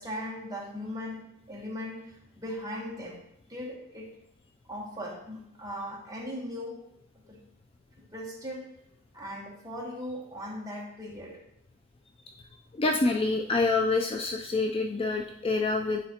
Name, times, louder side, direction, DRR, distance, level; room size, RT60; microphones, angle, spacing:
voice 1, 0.0-3.2 3.5-4.2 4.7-6.8 7.3-7.4 8.1-8.7 9.1-11.4, equal, 15° right, -2 dB, 1.2 m, -38 dB
voice 2, 12.7-16.0, left 3 dB, 25° left, 3 dB, 0.3 m, -27 dB
9.6 x 4.2 x 2.8 m, 0.80 s
head